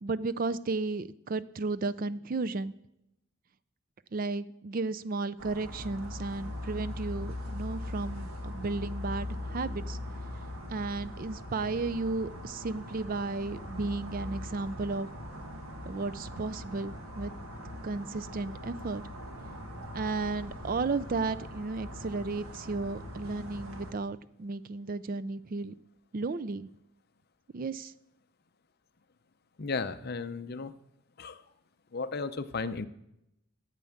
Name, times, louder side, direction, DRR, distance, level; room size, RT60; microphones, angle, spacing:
voice 1, 0.0-2.7 4.1-10.0 10.7-15.1 15.8-17.3 17.8-19.0 19.9-25.7 26.1-26.7 27.5-27.9, right 3 dB, 40° right, 16 dB, 0.4 m, -34 dB
sound 1, 5.4-23.9, left 1 dB, 75° right, 1.9 m, -41 dB
voice 2, 29.6-30.7 31.2-31.4 31.9-32.9, left 4 dB, 45° left, 12 dB, 0.6 m, -34 dB
11.0 x 8.4 x 7.1 m, 0.85 s
head